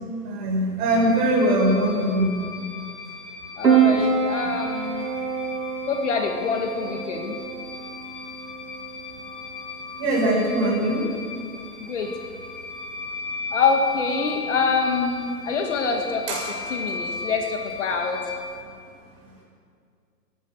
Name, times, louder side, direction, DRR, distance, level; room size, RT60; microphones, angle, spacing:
voice 1, 0.2-2.5 10.0-11.0 16.3-16.4, right 1 dB, 25° right, -4 dB, 7.4 m, -21 dB
sound 1, 0.8-18.4, left 4 dB, 20° left, 5.0 m, -37 dB
voice 2, 3.6-5.1 5.9-7.4 11.8-12.1 13.5-16.4 16.7-18.2, left 4 dB, 45° left, 3 dB, 2.3 m, -25 dB
Piano, 3.6-18.6, right 6 dB, 80° right, 5.4 m, -29 dB
28.5 x 16.0 x 6.6 m, 2.2 s
hypercardioid pair, 155°, 48 cm